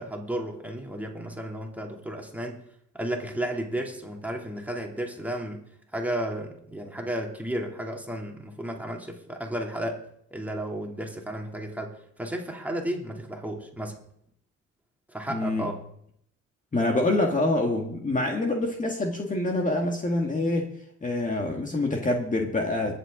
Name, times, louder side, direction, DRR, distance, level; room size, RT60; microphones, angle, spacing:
voice 1, 0.0-2.6 2.9-10.0 10.3-14.0 15.1-15.8, right 1 dB, 5° right, 0 dB, 2.7 m, -33 dB
voice 2, 15.3-15.7 16.7-20.7 21.0-23.0, left 2 dB, 25° left, 1 dB, 1.8 m, -26 dB
22.0 x 7.9 x 3.8 m, 0.70 s
cardioid pair, 90°, 30 cm